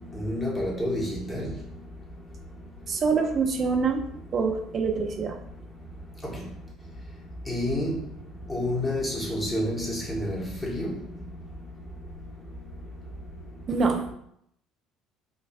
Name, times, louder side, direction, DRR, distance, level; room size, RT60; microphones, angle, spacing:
voice 1, 0.1-1.5 7.5-8.0 8.5-10.9, left 1 dB, 20° left, -3 dB, 1.4 m, -29 dB
voice 2, 2.9-4.0 4.3-5.4 13.7-14.1, right 5 dB, 40° right, 3 dB, 0.6 m, -25 dB
5.2 x 2.3 x 2.5 m, 0.73 s
figure-of-eight pair, 60°, 0 cm